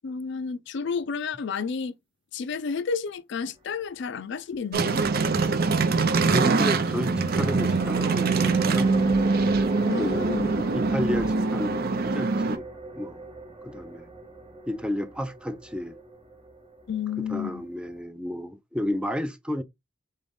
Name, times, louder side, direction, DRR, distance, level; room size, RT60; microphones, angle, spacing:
voice 1, 0.0-1.9 2.3-5.0 9.9-10.5 16.9-17.6, left 5 dB, 65° left, 0.4 m, -31 dB
sound 1, 4.7-12.6, right 4 dB, 50° right, 0.6 m, -23 dB
voice 2, 6.3-8.9 10.0-12.6 13.0-13.3 13.6-14.1 14.7-16.0 17.3-19.6, left 1 dB, 5° right, 0.5 m, -32 dB
sound 2, 6.6-18.0, right 2 dB, 30° right, 0.9 m, -40 dB
3.9 x 3.8 x 3.5 m
head